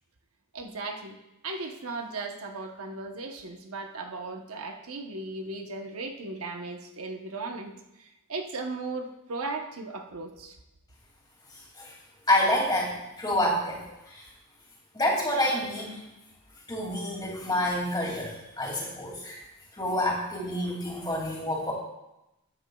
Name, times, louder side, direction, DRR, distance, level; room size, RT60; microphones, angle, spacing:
voice 1, 0.5-1.2 1.4-7.7 8.0-10.5, right 3 dB, 80° right, 4 dB, 0.9 m, -36 dB
voice 2, 12.3-12.9 13.2-13.8 14.1-14.2 14.9-16.0 16.7-19.4 19.7-21.7, left 1 dB, 20° left, -2 dB, 2.4 m, -28 dB
13.0 x 9.1 x 2.3 m, 0.92 s
head